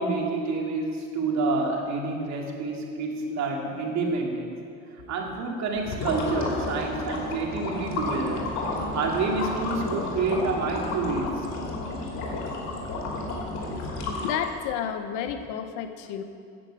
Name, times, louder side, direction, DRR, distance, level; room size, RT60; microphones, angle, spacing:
voice 1, 0.0-4.5 5.1-8.5 8.9-11.5 13.5-13.7, right 3 dB, 65° right, 1 dB, 2.3 m, -28 dB
sound 1, 5.8-14.7, left 2 dB, 70° left, 2.9 m, -32 dB
Wind instrument woodwind instrument, 6.6-11.5, equal, ahead, 3.0 m, -45 dB
voice 2, 12.1-13.0 13.7-13.9 14.2-16.2, left 8 dB, 85° left, 9 dB, 0.9 m, -33 dB
9.9 x 7.8 x 8.7 m, 2.5 s
supercardioid pair, 85°, 29 cm